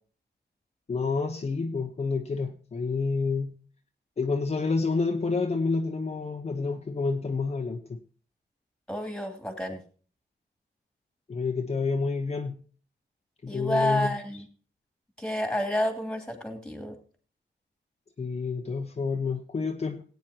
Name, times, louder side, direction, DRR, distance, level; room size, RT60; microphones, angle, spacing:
voice 1, 0.9-3.6 4.2-8.0 11.3-12.6 13.4-14.4 18.2-20.0, left 4 dB, 35° left, 1.0 m, -29 dB
voice 2, 8.9-9.8 13.5-14.4 15.2-17.0, equal, 5° left, 2.9 m, -29 dB
18.5 x 9.3 x 2.9 m
wide cardioid pair, 145°, 19 cm